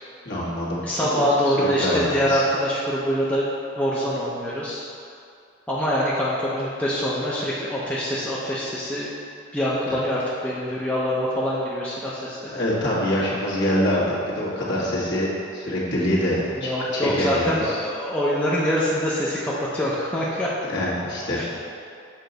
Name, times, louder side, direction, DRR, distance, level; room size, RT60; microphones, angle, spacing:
voice 1, 0.2-2.4 9.9-10.0 12.5-17.8 20.7-21.5, left 1 dB, 55° left, -7 dB, 1.6 m, -25 dB
voice 2, 0.8-3.5 3.8-4.8 5.7-9.1 9.5-12.4 16.5-20.5 21.3-21.5, equal, 5° left, -7 dB, 0.5 m, -24 dB
6.6 x 4.5 x 4.0 m, 2.4 s
head